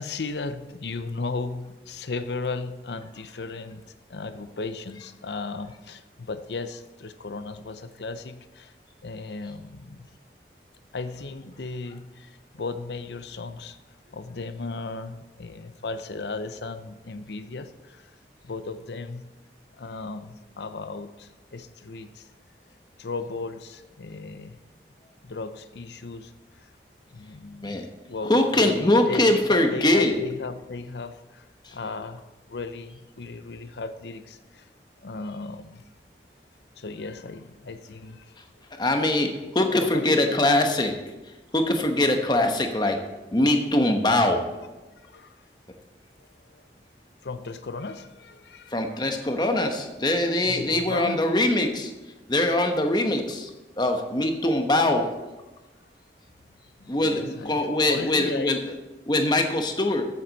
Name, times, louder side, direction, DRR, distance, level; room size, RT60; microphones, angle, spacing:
voice 1, 0.0-8.7 9.0-10.1 10.9-13.8 14.1-18.1 18.4-19.3 19.8-22.3 23.0-24.6 25.2-26.3 27.1-27.8 28.1-28.3 28.6-31.4 31.7-32.2 32.5-34.7 35.0-35.8 36.8-38.3 39.4-40.4 45.1-45.4 47.2-48.8 49.2-49.3 50.4-51.2 56.8-58.7, left 3 dB, 75° left, 11 dB, 0.7 m, -36 dB
voice 2, 28.3-30.1 31.6-31.7 38.8-40.9 41.5-43.0 43.3-44.4 48.7-51.9 52.3-53.5 53.8-55.0 56.9-58.6 59.1-60.0, left 1 dB, 25° left, 4 dB, 1.1 m, -22 dB
14.0 x 7.7 x 4.1 m, 1.1 s
head